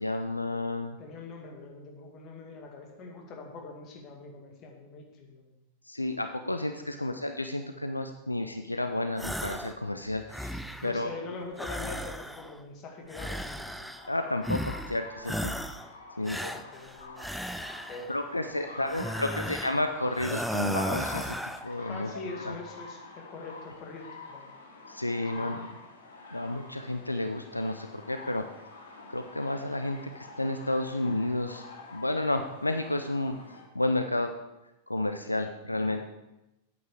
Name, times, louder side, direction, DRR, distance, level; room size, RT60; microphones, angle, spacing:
voice 1, 0.0-1.0 5.9-11.1 14.1-15.5 16.2-16.5 18.1-21.4 21.6-22.1 22.5-22.6 24.9-25.7 26.3-28.4 29.1-31.6 31.9-33.4 33.7-34.3 34.9-36.0, left 1 dB, 85° left, 7 dB, 0.5 m, -31 dB
voice 2, 1.0-5.6 6.9-7.1 10.8-13.9 16.2-17.3 17.8-19.6 21.9-24.5 25.3-25.5 35.7-36.0, left 3 dB, 35° left, 2 dB, 2.1 m, -44 dB
sound 1, 9.2-9.8 10.1-11.0 11.6-12.6 13.1-14.1 14.4-15.0 15.2-15.9 16.3-18.1 18.9-19.8 20.2-21.7, equal, ahead, 0.5 m, -35 dB
sound 2, 13.9-33.6, left 3 dB, 65° left, 2.5 m, -47 dB
9.3 x 8.5 x 4.9 m, 0.94 s
figure-of-eight pair, 90°, 0 cm